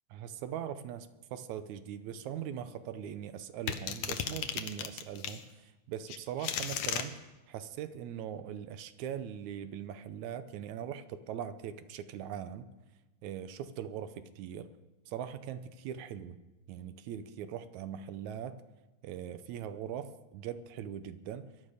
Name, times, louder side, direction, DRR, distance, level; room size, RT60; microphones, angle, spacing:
voice 1, 0.1-7.2 7.5-12.7 13.2-14.7 15.1-16.4 16.7-18.6 19.0-21.5, right 9 dB, 75° right, 12 dB, 2.0 m, -41 dB
sound 1, 3.7-5.4 6.1-7.1, left 9 dB, 70° left, 1.6 m, -35 dB
22.0 x 11.5 x 5.0 m, 1.1 s
omnidirectional pair, 3.5 m